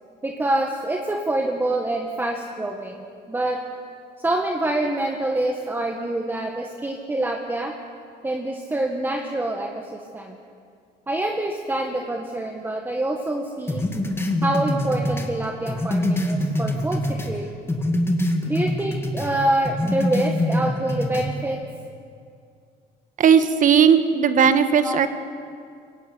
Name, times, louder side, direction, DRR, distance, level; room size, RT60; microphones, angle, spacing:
voice 1, 0.2-3.0 3.3-3.6 4.2-7.7 8.2-10.4 11.1-13.8 14.4-17.5 18.5-21.6 24.8-25.0, right 1 dB, 10° right, 2 dB, 1.8 m, -26 dB
sound 1, 13.7-17.4 17.7-19.3 19.6-21.3, left 1 dB, 15° left, 2.3 m, -24 dB
voice 2, 23.2-25.1, right 7 dB, 50° right, 10 dB, 1.6 m, -17 dB
22.5 x 16.5 x 9.6 m, 2.3 s
cardioid pair, 110°, 17 cm